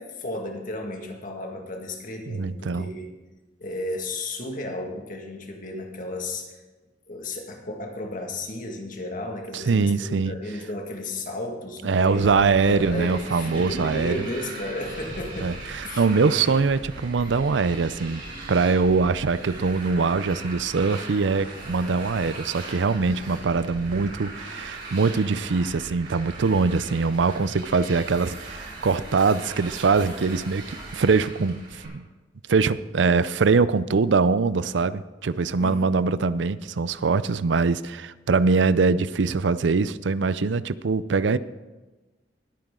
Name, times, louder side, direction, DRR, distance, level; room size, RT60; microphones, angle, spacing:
voice 1, 0.0-3.1 3.6-6.6 7.1-12.4 12.6-15.6 15.8-16.1 35.6-36.1, left 1 dB, 45° left, 2 dB, 1.9 m, -34 dB
voice 2, 2.3-2.9 9.5-10.3 11.8-14.3 15.4-18.2 18.5-32.0 32.5-41.4, right 4 dB, 80° right, 16 dB, 0.5 m, -23 dB
Motorcycle, 12.1-31.9, right 2 dB, 50° right, 5.2 m, -39 dB
19.5 x 9.0 x 3.8 m, 1.2 s
head